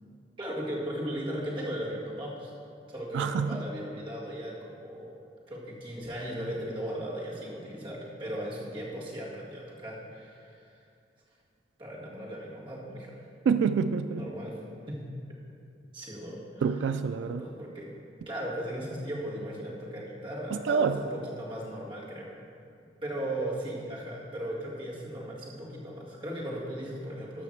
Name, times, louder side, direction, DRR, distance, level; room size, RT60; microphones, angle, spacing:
voice 1, 0.4-2.5 2.9-5.1 5.5-10.7 11.8-13.2 14.1-14.6 14.9-15.1 15.9-16.4 17.2-17.9 18.3-22.3 23.0-27.4, right 1 dB, 30° right, -6 dB, 1.9 m, -37 dB
voice 2, 3.1-3.6 13.5-14.3 16.6-17.5 20.5-21.0, right 6 dB, 90° right, 9 dB, 0.3 m, -27 dB
13.0 x 5.8 x 4.5 m, 2.5 s
head